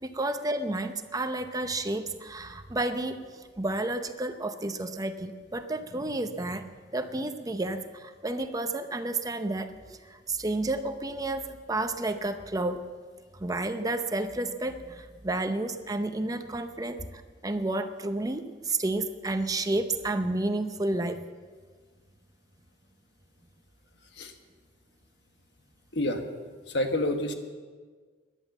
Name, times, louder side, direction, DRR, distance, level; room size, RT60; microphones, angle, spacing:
voice 1, 0.0-12.8 13.4-21.3, right 2 dB, 20° right, 8 dB, 0.7 m, -31 dB
voice 2, 25.9-26.2 26.7-27.3, left 1 dB, 70° left, 5 dB, 1.4 m, -28 dB
14.0 x 11.0 x 7.2 m, 1.5 s
head